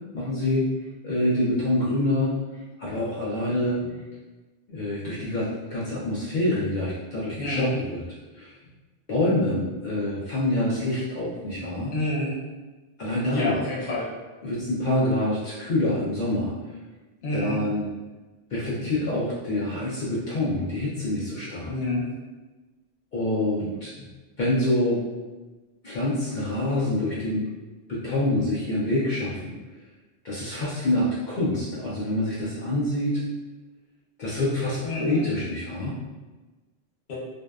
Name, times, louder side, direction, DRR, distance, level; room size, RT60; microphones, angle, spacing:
voice 1, 0.1-0.7 1.0-2.4 2.8-3.9 4.7-8.0 8.3-8.5 9.1-11.9 13.0-13.5 14.4-16.5 17.3-17.9 18.5-21.7 23.1-23.9 24.4-25.0 25.8-27.5 27.9-29.5 30.2-33.2 34.2-36.0, left 1 dB, 55° left, -8 dB, 0.6 m, -26 dB
voice 2, 7.4-7.8 11.9-12.3 13.3-14.1 17.2-17.6 21.7-22.0 34.8-35.2 37.1-37.2, left 2 dB, 75° left, -5 dB, 1.0 m, -28 dB
2.6 x 2.1 x 2.3 m, 1.2 s
omnidirectional pair, 1.1 m